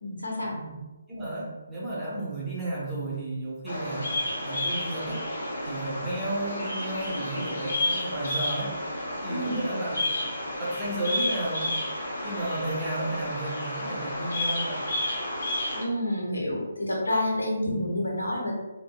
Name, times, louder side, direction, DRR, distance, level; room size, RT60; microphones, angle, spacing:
voice 1, 0.0-0.6 9.3-9.6 15.8-18.5, left 1 dB, 85° left, -2 dB, 0.8 m, -29 dB
voice 2, 1.1-5.2 5.6-8.7 9.2-10.2 10.6-11.8 12.2-14.8 17.7-17.9, right 1 dB, 5° right, -9 dB, 0.9 m, -33 dB
Bird vocalization bird call bird song, 3.7-15.8, left 1 dB, 60° left, 1.2 m, -31 dB
3.4 x 2.2 x 2.2 m, 1.1 s
figure-of-eight pair, 145°, 0 cm